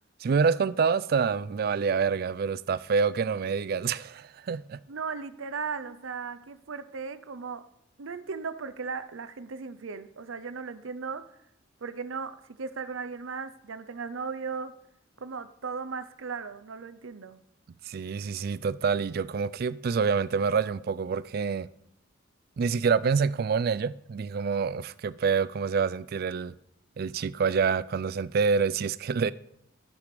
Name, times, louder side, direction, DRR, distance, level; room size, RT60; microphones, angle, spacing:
voice 1, 0.2-4.8 17.9-21.7 22.6-26.5 27.0-29.3, right 5 dB, 50° right, 0.3 m, -27 dB
voice 2, 4.9-7.7 8.0-11.3 11.8-14.8 15.2-17.4, right 5 dB, 90° right, 0.7 m, -37 dB
13.5 x 5.0 x 5.2 m
head